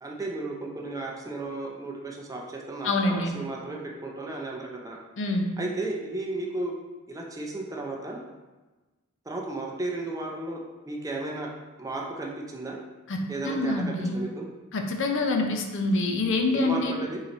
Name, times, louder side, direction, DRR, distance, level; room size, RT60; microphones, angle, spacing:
voice 1, 0.0-5.0 5.6-6.7 7.1-8.2 9.3-11.5 11.8-12.8 13.3-14.4 16.5-17.2, right 2 dB, 15° right, -1 dB, 0.4 m, -34 dB
voice 2, 2.8-3.3 5.2-5.5 13.1-14.2 14.7-16.9, left 2 dB, 60° left, 3 dB, 0.5 m, -26 dB
3.8 x 3.0 x 4.1 m, 1.2 s
head